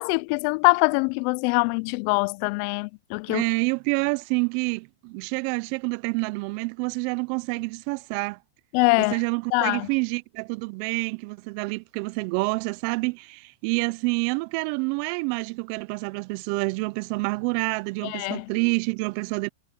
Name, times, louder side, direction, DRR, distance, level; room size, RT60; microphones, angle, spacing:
voice 1, 0.0-3.4 8.7-9.2 9.5-9.9 18.0-18.5, left 30 dB, 45° left, 0.4 m, -23 dB
voice 2, 3.3-8.4 9.0-19.5, right 29 dB, 45° right, 0.4 m, -28 dB
supercardioid pair, 145°, 0 cm